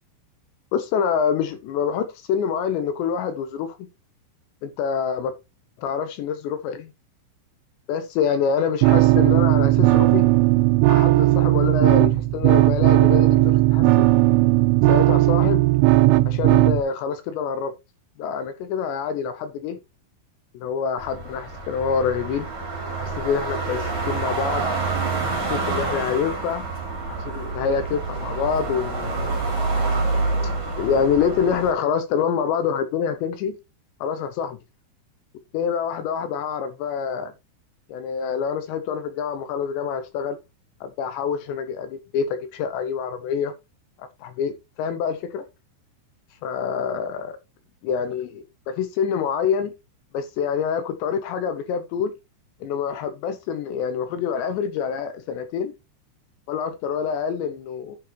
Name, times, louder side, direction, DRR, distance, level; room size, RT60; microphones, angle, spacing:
voice 1, 0.7-3.8 4.6-5.3 5.8-6.9 7.9-10.3 10.9-14.1 14.9-15.6 16.3-17.7 18.2-19.8 20.5-22.5 23.0-24.6 25.2-26.6 27.1-29.4 30.8-33.6 34.0-34.6 35.5-37.3 37.9-40.4 40.8-43.5 44.0-44.5 44.8-45.4 46.4-47.3 47.8-49.7 50.1-52.1 52.6-55.7 56.5-58.0, left 7 dB, 75° left, 2.8 m, -26 dB
sound 1, 8.8-16.8, right 18 dB, 90° right, 3.3 m, -17 dB
sound 2, 21.0-31.7, right 3 dB, 25° right, 3.7 m, -27 dB
11.0 x 7.5 x 2.9 m
omnidirectional pair, 5.7 m